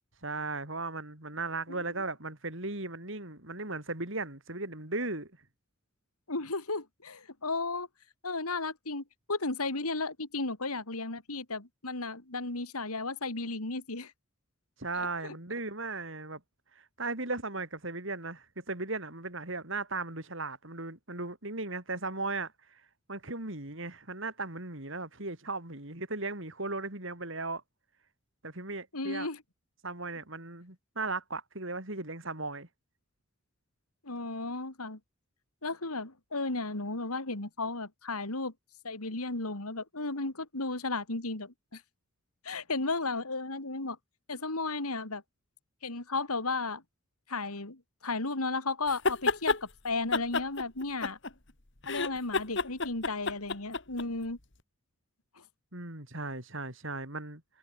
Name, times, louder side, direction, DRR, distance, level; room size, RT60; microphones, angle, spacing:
voice 1, 0.2-5.3 14.8-16.4 16.8-22.8 23.1-27.6 28.4-29.3 29.8-32.7 55.7-57.4, right 3 dB, 60° right, 3.7 m, -37 dB
voice 2, 6.3-7.9 8.2-14.1 14.9-15.3 28.9-29.4 34.0-35.0 35.6-38.5 38.8-41.8 42.4-44.0 44.3-45.2 45.8-46.8 47.3-51.2 51.8-54.4, left 3 dB, 90° left, 3.1 m, -34 dB
sound 1, 48.9-49.6 50.1-51.5 51.8-54.0, left 3 dB, 55° left, 2.1 m, -30 dB
head